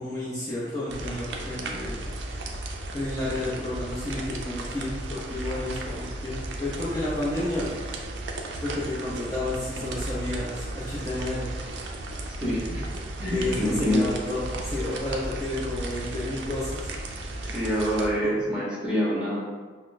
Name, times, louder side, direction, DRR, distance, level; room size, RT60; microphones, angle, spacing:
voice 1, 0.0-2.1 2.9-7.8 8.6-11.5 13.3-16.9 18.2-18.3, left 1 dB, 20° left, -9 dB, 0.6 m, -31 dB
sound 1, 0.9-18.1, right 2 dB, 70° right, 0.4 m, -35 dB
voice 2, 12.4-12.8 13.2-14.0 17.4-19.4, equal, 5° right, -7 dB, 0.9 m, -26 dB
5.8 x 2.0 x 2.5 m, 1.5 s
head